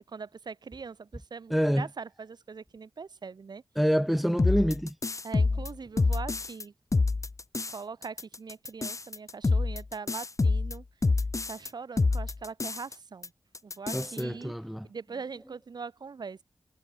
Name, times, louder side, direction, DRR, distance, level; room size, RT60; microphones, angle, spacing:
voice 1, 0.1-3.6 5.2-6.7 7.7-10.8 11.5-13.3 13.6-14.5 14.8-16.4, right 5 dB, 75° right, 4.2 m, -41 dB
voice 2, 1.5-1.8 3.8-4.9 13.9-14.9, equal, ahead, 1.5 m, -26 dB
sound 1, 4.4-6.6 6.9-7.8 8.0-11.7 12.0-12.9 13.2-13.3 13.5-14.2, left 3 dB, 45° left, 2.2 m, -27 dB
cardioid pair, 60°, 7 cm